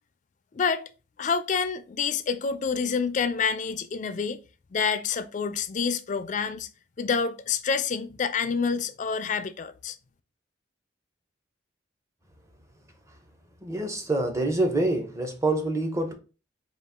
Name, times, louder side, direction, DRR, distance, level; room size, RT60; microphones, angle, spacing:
voice 1, 0.5-0.8 1.2-4.4 4.7-6.7 7.0-10.0, left 5 dB, 40° left, 0.3 m, -27 dB
voice 2, 13.6-16.1, right 2 dB, 15° right, 0.7 m, -26 dB
4.0 x 2.4 x 3.6 m
head